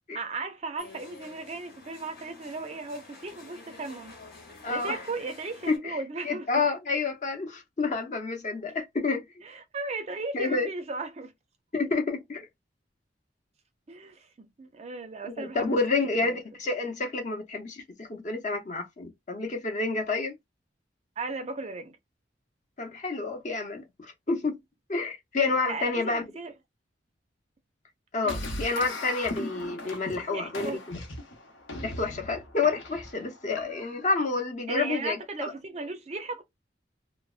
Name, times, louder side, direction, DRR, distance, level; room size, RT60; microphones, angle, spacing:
voice 1, 0.1-4.1 4.7-6.5 9.4-11.3 13.9-15.8 16.1-16.4 21.2-21.9 25.7-26.5 28.2-28.4 30.2-30.8 34.7-36.4, right 3 dB, 35° right, 0.4 m, -36 dB
sound 1, 0.8-5.8, left 3 dB, 55° left, 1.0 m, -49 dB
voice 2, 4.6-5.0 5.7-6.0 6.2-9.2 10.3-10.7 11.7-12.5 15.4-20.3 22.8-24.6 24.9-26.2 28.1-30.8 31.8-35.5, left 3 dB, 40° left, 0.7 m, -29 dB
sound 2, 28.3-34.1, left 1 dB, 90° left, 0.8 m, -38 dB
3.3 x 2.0 x 2.3 m
head